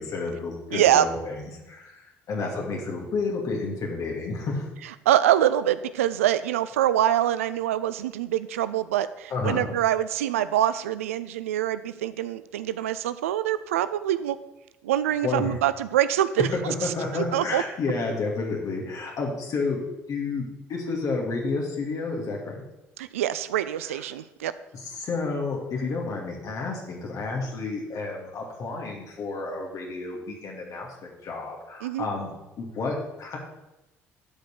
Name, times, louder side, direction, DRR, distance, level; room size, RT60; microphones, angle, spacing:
voice 1, 0.0-4.7 9.3-9.7 15.2-15.6 16.8-19.8 20.1-20.4 20.7-22.6 23.8-24.0 25.0-32.3 32.6-33.4, left 3 dB, 55° left, -1 dB, 2.5 m, -30 dB
voice 2, 0.7-1.1 5.1-14.4 14.8-17.6 23.0-24.5 31.8-32.1, right 12 dB, 80° right, 14 dB, 0.4 m, -25 dB
11.5 x 5.3 x 6.6 m, 0.96 s
hypercardioid pair, 55°, 7 cm